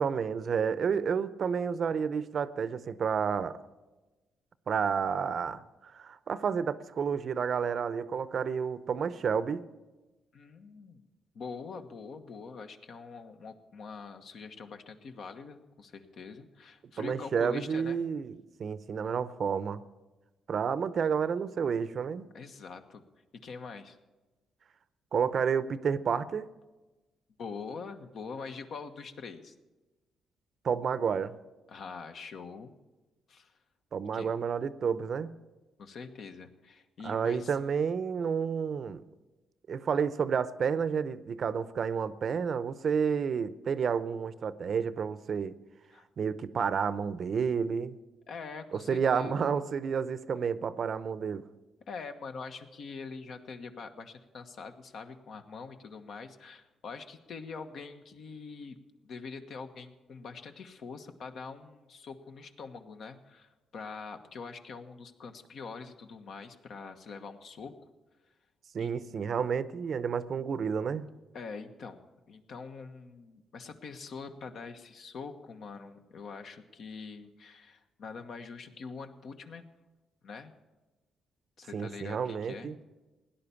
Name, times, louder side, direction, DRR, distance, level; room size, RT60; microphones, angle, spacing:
voice 1, 0.0-3.6 4.7-9.6 17.0-19.8 20.5-22.3 25.1-26.5 30.6-31.3 33.9-35.3 37.0-39.0 39.7-45.5 46.2-47.9 48.7-51.5 68.7-71.1 81.7-82.8, right 6 dB, 55° right, 15 dB, 0.7 m, -30 dB
voice 2, 10.3-11.1 11.3-18.0 22.3-23.0 23.4-24.0 27.4-29.5 31.7-32.7 33.3-33.5 34.1-34.3 35.8-37.5 45.9-46.1 48.3-49.6 51.9-58.7 59.0-67.7 68.8-68.9 71.3-79.7 80.2-80.5 81.6-82.7, left 5 dB, 65° left, 7 dB, 1.3 m, -44 dB
17.0 x 10.5 x 7.1 m, 1.2 s
cardioid pair, 90°, 0 cm